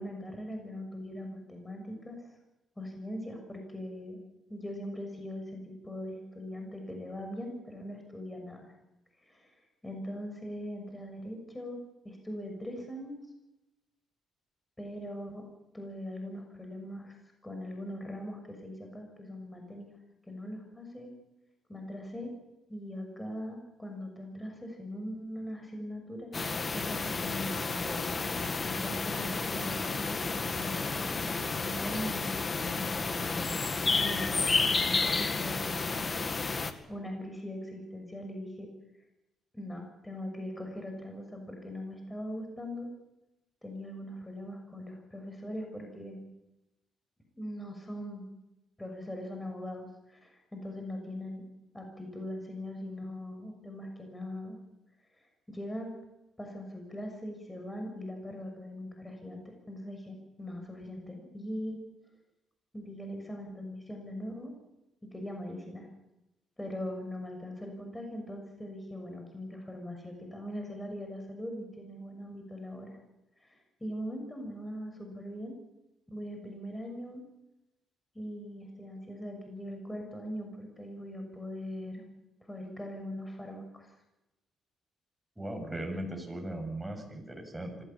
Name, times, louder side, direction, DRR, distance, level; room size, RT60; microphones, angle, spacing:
voice 1, 0.0-2.3 2.8-4.2 4.5-8.7 9.2-11.8 12.0-13.2 14.8-15.4 15.7-17.1 17.4-20.0 20.3-21.1 21.7-22.3 22.7-26.4 26.7-34.6 34.8-35.9 36.9-38.7 39.5-42.9 43.6-46.2 47.4-48.3 48.8-51.4 51.7-54.6 55.2-55.9 56.4-61.8 62.7-64.5 65.1-65.9 66.6-73.0 73.4-75.5 76.1-77.2 78.1-82.1 82.5-83.9, equal, 10° left, 3 dB, 6.6 m, -41 dB
sound 1, 26.3-36.7, left 4 dB, 35° left, 2.1 m, -31 dB
voice 2, 85.4-87.8, right 1 dB, 10° right, 2 dB, 7.7 m, -38 dB
25.5 x 16.5 x 8.7 m, 0.94 s
cardioid pair, 90°, 0 cm